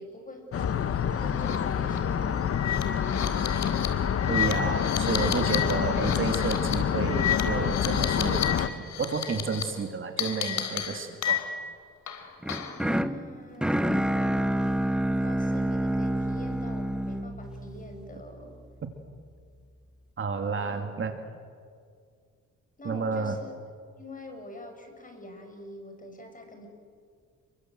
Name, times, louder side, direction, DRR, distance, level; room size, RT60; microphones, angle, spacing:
voice 1, 0.0-3.6 12.4-18.5 20.4-20.9 22.8-23.5 24.0-26.7, left 2 dB, 25° left, 4 dB, 7.1 m, -45 dB
sound 1, 0.5-8.7, left 8 dB, 50° left, 1.2 m, -27 dB
sound 2, 1.3-1.6 1.9-2.0 2.5-8.6 8.9-9.6 10.2-11.7 12.1-12.8, left 9 dB, 65° left, 4.0 m, -32 dB
voice 2, 4.3-11.5 20.2-21.1 22.8-23.4, right 5 dB, 40° right, 5 dB, 2.6 m, -31 dB
sound 3, 12.4-18.5, right 1 dB, 5° right, 1.3 m, -28 dB
29.0 x 24.0 x 7.9 m, 2.1 s
cardioid pair, 90°, 30 cm